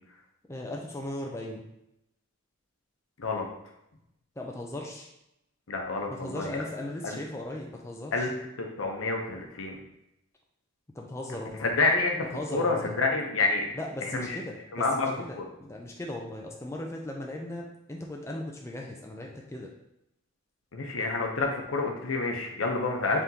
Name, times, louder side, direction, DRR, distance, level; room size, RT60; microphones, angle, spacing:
voice 1, 0.5-1.7 4.4-5.1 6.1-8.3 10.9-11.7 12.3-12.9 13.8-19.7 23.1-23.2, left 1 dB, 15° left, 0 dB, 0.4 m, -38 dB
voice 2, 5.7-6.7 7.0-7.2 8.1-8.3 8.6-9.8 11.6-13.7 14.0-14.4 14.7-15.4 20.7-23.2, left 3 dB, 80° left, 2 dB, 0.7 m, -28 dB
3.8 x 3.5 x 2.8 m, 0.84 s
head